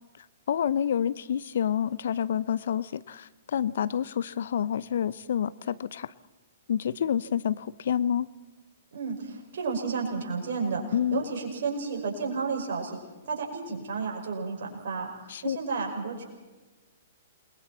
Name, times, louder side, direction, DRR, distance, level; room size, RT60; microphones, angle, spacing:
voice 1, 0.5-6.1 6.7-8.3 10.9-11.2 15.3-15.6, left 9 dB, 60° left, 18 dB, 0.7 m, -28 dB
voice 2, 8.9-10.8 11.1-13.0 13.3-15.1 15.4-16.2, right 5 dB, 55° right, 1 dB, 5.8 m, -31 dB
29.0 x 21.5 x 4.3 m, 1.2 s
figure-of-eight pair, 115°, 0 cm